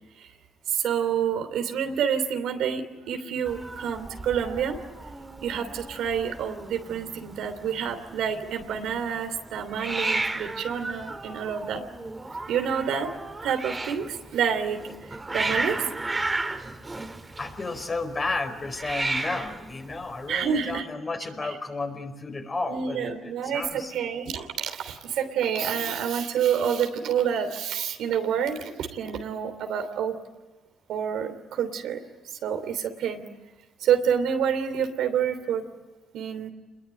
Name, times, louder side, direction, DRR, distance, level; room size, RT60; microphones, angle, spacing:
voice 1, 0.7-4.8 5.4-11.8 12.5-13.1 13.4-15.8 20.3-20.8 22.7-30.2 30.9-32.0 32.3-33.2 33.8-35.6 36.1-36.5, right 8 dB, 80° right, 6 dB, 3.1 m, -28 dB
Hiss, 3.4-20.8, right 2 dB, 20° right, 2.1 m, -34 dB
voice 2, 17.4-23.9, left 3 dB, 30° left, 5 dB, 4.6 m, -32 dB
27.5 x 22.0 x 9.0 m, 1.2 s
cardioid pair, 90°, 0 cm